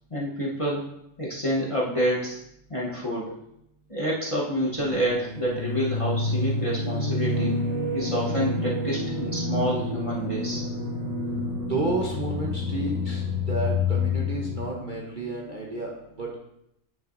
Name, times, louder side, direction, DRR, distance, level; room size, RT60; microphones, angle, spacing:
voice 1, 0.1-0.8 1.2-2.4 2.7-3.3 3.9-7.5 7.9-10.7, equal, 25° left, -5 dB, 0.9 m, -28 dB
sound 1, 4.7-14.6, left 3 dB, 25° right, 1.6 m, -28 dB
voice 2, 11.7-16.4, right 3 dB, 45° right, -2 dB, 0.7 m, -31 dB
9.2 x 5.7 x 2.6 m, 0.80 s
omnidirectional pair, 1.6 m